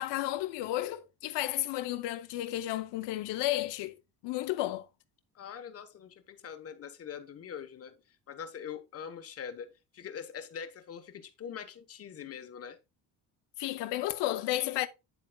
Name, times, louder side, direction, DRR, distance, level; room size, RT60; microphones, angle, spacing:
voice 1, 0.0-4.0 4.2-4.9 13.6-14.9, left 15 dB, 80° left, 0.7 m, -32 dB
voice 2, 5.3-12.8, left 7 dB, 35° left, 1.0 m, -43 dB
9.1 x 7.5 x 2.2 m
cardioid pair, 165°, 41 cm